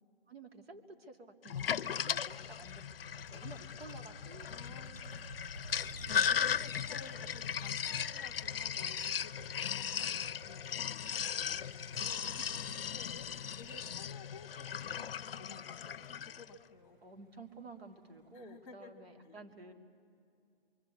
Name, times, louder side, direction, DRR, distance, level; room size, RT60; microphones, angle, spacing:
voice 1, 0.3-4.8 6.2-6.4 12.4-12.5 12.9-13.3 17.0-19.7, right 3 dB, 75° right, 6 dB, 2.6 m, -53 dB
Sink (filling or washing), 1.4-16.5, left 8 dB, 65° left, 0.6 m, -37 dB
Motor vehicle (road), 2.2-18.3, right 1 dB, 45° right, 5.5 m, -54 dB
voice 2, 4.4-5.2 6.6-12.3 12.9-13.3 13.6-14.7 15.1-17.0 18.3-18.9 19.2-19.4, left 4 dB, 5° left, 1 dB, 1.1 m, -55 dB
26.0 x 23.5 x 8.4 m, 2.4 s
hypercardioid pair, 170°, 31 cm